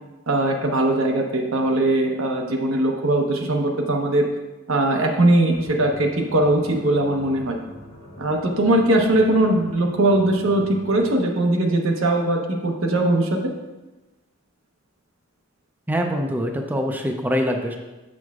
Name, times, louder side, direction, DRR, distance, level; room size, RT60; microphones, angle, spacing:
voice 1, 0.3-4.3 4.7-7.6 8.2-13.4, right 1 dB, 80° right, 2 dB, 0.9 m, -20 dB
sound 1, 5.5-11.2, left 1 dB, 80° left, 1.2 m, -43 dB
voice 2, 15.9-17.8, equal, 10° right, 3 dB, 0.4 m, -24 dB
7.4 x 6.2 x 2.4 m, 1.1 s
head